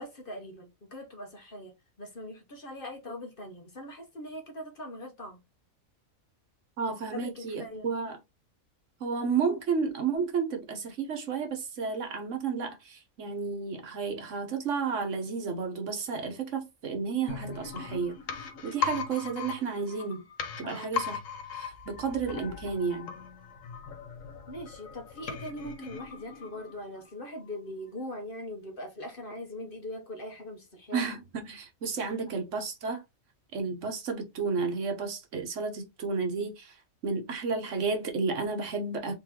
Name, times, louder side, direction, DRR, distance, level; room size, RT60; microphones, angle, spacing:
voice 1, 0.0-5.4 6.9-7.9 20.6-20.9 24.5-31.0 32.2-32.3, left 1 dB, 45° left, 1.0 m, -41 dB
voice 2, 6.8-8.2 9.0-20.2 20.6-21.2 21.5-23.1 30.9-33.0 33.5-39.2, right 5 dB, 60° right, 1.3 m, -32 dB
sound 1, 17.3-27.0 27.3-27.4, left 6 dB, 70° left, 1.2 m, -38 dB
3.9 x 3.8 x 2.9 m
omnidirectional pair, 1.5 m